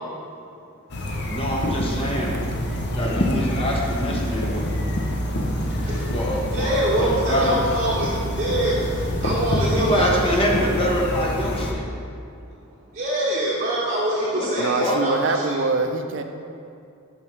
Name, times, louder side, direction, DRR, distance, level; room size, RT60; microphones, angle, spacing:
sound 1, 0.9-11.7, equal, 50° left, 0.7 m, -26 dB
voice 1, 1.3-2.3 2.9-4.7 6.1-7.5 9.7-11.9 14.3-15.0, equal, 25° left, -2 dB, 1.0 m, -25 dB
voice 2, 6.5-8.1 8.4-8.7 9.2-10.0 13.0-15.6, right 1 dB, 35° right, -7 dB, 0.9 m, -24 dB
voice 3, 14.6-16.2, right 3 dB, 60° right, 6 dB, 0.5 m, -24 dB
9.1 x 5.6 x 3.2 m, 2.5 s
head